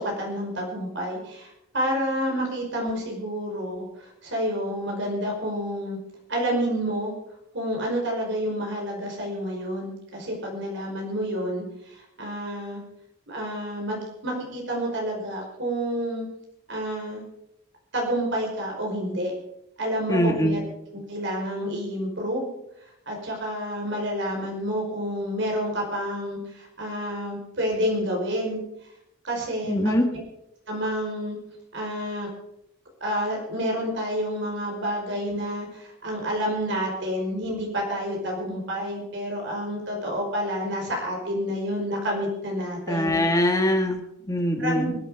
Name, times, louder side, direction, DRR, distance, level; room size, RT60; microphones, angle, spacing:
voice 1, 0.0-6.0 6.3-7.1 7.5-12.8 13.3-16.3 16.7-17.2 17.9-19.3 19.8-20.6 20.9-22.5 23.1-28.6 29.2-30.2 30.7-31.4 31.7-32.3 33.0-43.2 44.6-45.0, equal, 60° right, 0 dB, 5.3 m, -29 dB
voice 2, 20.1-20.6 29.7-30.1 42.9-44.9, equal, 15° left, 4 dB, 1.9 m, -23 dB
24.0 x 9.0 x 5.1 m, 0.84 s
head